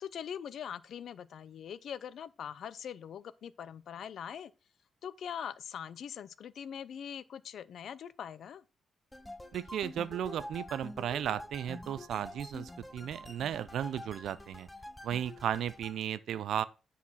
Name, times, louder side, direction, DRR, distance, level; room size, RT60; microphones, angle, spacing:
voice 1, 0.0-4.5 5.0-8.6, left 8 dB, 65° left, 0.6 m, -42 dB
sound 1, 9.1-16.0, left 1 dB, 10° left, 0.8 m, -47 dB
voice 2, 9.5-14.7 15.0-16.6, right 10 dB, 75° right, 0.6 m, -35 dB
9.7 x 4.2 x 5.7 m
cardioid pair, 140°, 0 cm